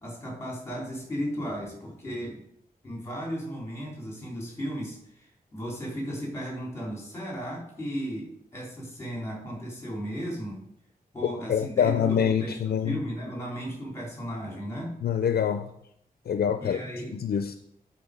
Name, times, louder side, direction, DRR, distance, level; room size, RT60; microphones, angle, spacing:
voice 1, 0.0-2.4 2.8-10.6 11.1-15.0 16.6-17.2, equal, 15° left, -3 dB, 3.7 m, -35 dB
voice 2, 11.5-13.0 15.0-15.7 16.3-16.8 17.1-17.6, left 8 dB, 85° left, 8 dB, 0.5 m, -25 dB
11.0 x 4.6 x 5.0 m, 0.74 s
wide cardioid pair, 120°, 16 cm